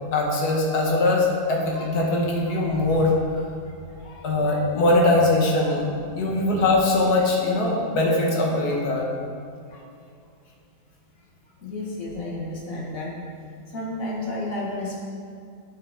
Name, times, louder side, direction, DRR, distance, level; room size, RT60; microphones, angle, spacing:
voice 1, 0.1-3.1 4.0-5.9 6.1-9.0, left 2 dB, 80° left, -2 dB, 1.7 m, -21 dB
voice 2, 11.6-13.1 13.7-15.0, left 2 dB, 60° left, -4 dB, 1.8 m, -31 dB
8.5 x 5.8 x 3.6 m, 2.4 s
omnidirectional pair, 1.7 m